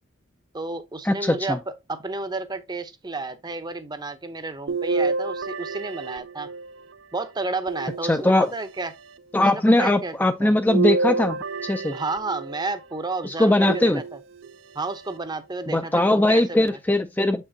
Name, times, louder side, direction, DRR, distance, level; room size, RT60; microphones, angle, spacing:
voice 1, 0.5-6.5 7.1-8.9 9.4-10.5 11.9-14.0 14.7-16.8, right 3 dB, 20° right, 0.7 m, -31 dB
voice 2, 1.0-1.6 8.0-8.5 9.3-12.0 13.2-14.0 15.7-17.4, left 1 dB, 10° left, 0.4 m, -20 dB
sound 1, 4.7-6.9 7.7-8.7 10.7-12.7 13.7-14.5 15.2-15.3 16.7-16.8, right 4 dB, 75° right, 0.6 m, -28 dB
7.4 x 5.6 x 2.7 m
head